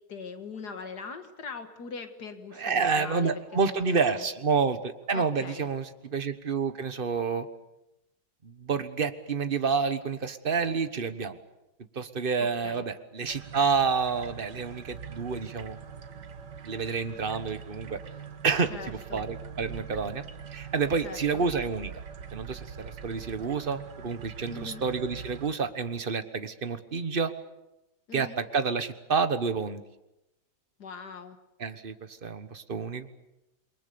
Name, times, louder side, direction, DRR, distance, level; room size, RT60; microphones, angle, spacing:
voice 1, 0.1-3.3 3.7-4.3 5.1-5.7 12.4-12.8 18.7-19.2 21.0-21.4 24.5-24.9 28.1-28.4 30.8-31.4, left 5 dB, 70° left, 8 dB, 2.2 m, -41 dB
voice 2, 2.6-7.5 8.4-11.4 11.9-15.8 16.6-18.0 18.4-20.2 20.5-21.9 22.3-27.3 28.1-29.8 31.6-33.1, right 5 dB, 35° right, 10 dB, 1.3 m, -29 dB
sound 1, 13.3-25.5, right 7 dB, 75° right, 1.9 m, -43 dB
28.0 x 22.5 x 6.9 m, 0.91 s
omnidirectional pair, 1.8 m